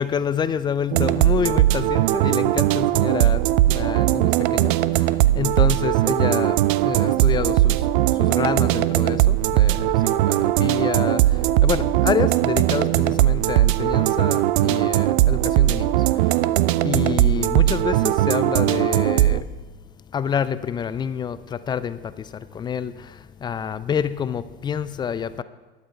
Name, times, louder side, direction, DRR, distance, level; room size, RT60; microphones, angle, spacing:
voice 1, 0.0-16.5 16.8-19.4 20.1-25.4, left 7 dB, 15° left, 15 dB, 0.3 m, -28 dB
sound 1, 0.9-19.4, right 15 dB, 60° right, 0.5 m, -19 dB
12.0 x 10.0 x 4.4 m, 1.3 s
hypercardioid pair, 85°, 29 cm